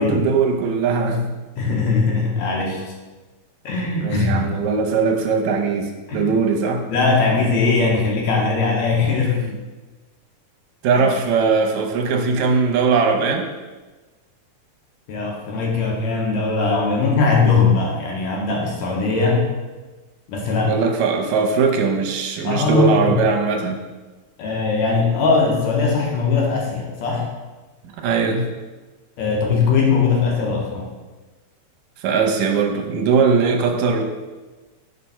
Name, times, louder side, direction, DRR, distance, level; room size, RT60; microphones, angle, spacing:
voice 1, 0.0-1.4 4.0-6.8 9.4-9.6 10.8-13.5 20.6-23.8 28.0-28.5 32.0-34.0, right 5 dB, 75° right, 2 dB, 2.0 m, -20 dB
voice 2, 1.6-2.9 3.6-4.5 6.1-6.3 6.9-9.4 11.0-11.1 15.1-19.5 20.3-20.7 22.4-23.2 24.4-27.3 29.2-30.9, left 4 dB, 75° left, -2 dB, 2.1 m, -20 dB
6.6 x 3.4 x 5.5 m, 1.2 s
omnidirectional pair, 3.4 m